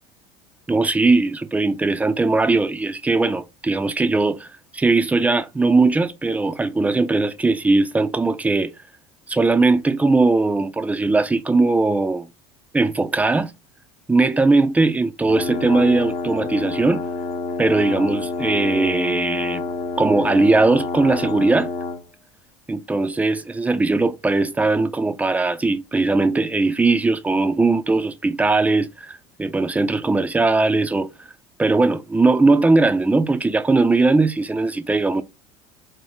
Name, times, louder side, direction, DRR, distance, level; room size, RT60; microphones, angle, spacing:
voice 1, 0.7-4.5 4.7-8.7 9.3-12.3 12.7-13.5 14.1-17.0 17.6-19.6 20.0-21.7 22.7-31.1 31.6-35.2, right 3 dB, 10° right, 0.4 m, -19 dB
sound 1, 15.3-22.0, left 4 dB, 50° left, 0.7 m, -28 dB
2.6 x 2.2 x 3.4 m
supercardioid pair, 100°, 15 cm